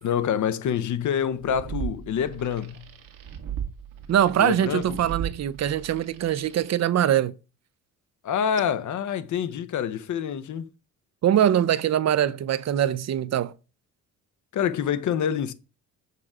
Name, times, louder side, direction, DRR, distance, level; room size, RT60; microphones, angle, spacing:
voice 1, 0.0-2.9 4.4-5.0 8.2-10.7 14.5-15.5, left 8 dB, 60° left, 0.8 m, -26 dB
sound 1, 1.3-6.8, right 9 dB, 80° right, 1.5 m, -37 dB
voice 2, 4.1-7.3 11.2-13.5, right 10 dB, 50° right, 0.6 m, -23 dB
6.8 x 3.7 x 4.8 m
cardioid pair, 85°, 34 cm